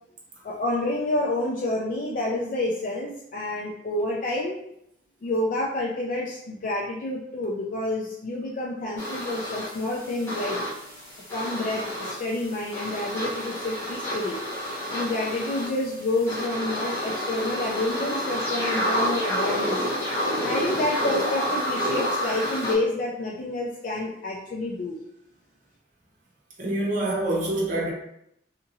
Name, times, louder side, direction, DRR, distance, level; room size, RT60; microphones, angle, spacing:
voice 1, 0.4-4.6 5.2-10.6 11.3-14.4 14.9-19.8 20.4-25.0, left 2 dB, 45° left, -3 dB, 0.4 m, -28 dB
sound 1, 9.0-22.7, equal, 15° left, 1.0 m, -29 dB
voice 2, 26.6-27.9, right 1 dB, 45° right, -4 dB, 0.9 m, -26 dB
2.8 x 2.6 x 2.6 m, 0.76 s
head